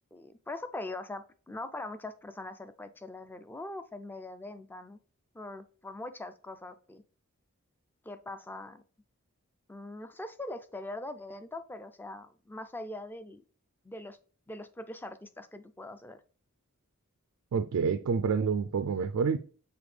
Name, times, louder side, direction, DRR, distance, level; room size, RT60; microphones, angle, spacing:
voice 1, 0.1-5.0 5.3-7.0 8.0-8.8 9.7-13.4 13.8-14.2 14.5-16.2, left 2 dB, 10° left, 0.3 m, -42 dB
voice 2, 17.5-19.4, right 5 dB, 75° right, 0.4 m, -28 dB
6.9 x 4.2 x 3.3 m
head